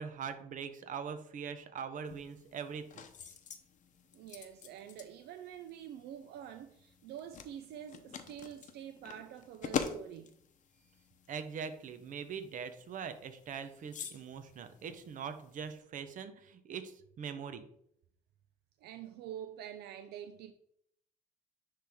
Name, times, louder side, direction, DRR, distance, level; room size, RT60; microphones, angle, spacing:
voice 1, 0.0-3.0 11.3-17.7, right 6 dB, 50° right, 0.8 m, -42 dB
sound 1, 2.0-15.8, left 7 dB, 50° left, 0.8 m, -46 dB
voice 2, 4.1-10.3 18.8-20.5, right 10 dB, 75° right, 0.5 m, -47 dB
10.0 x 3.4 x 3.5 m
cardioid pair, 110°, 17 cm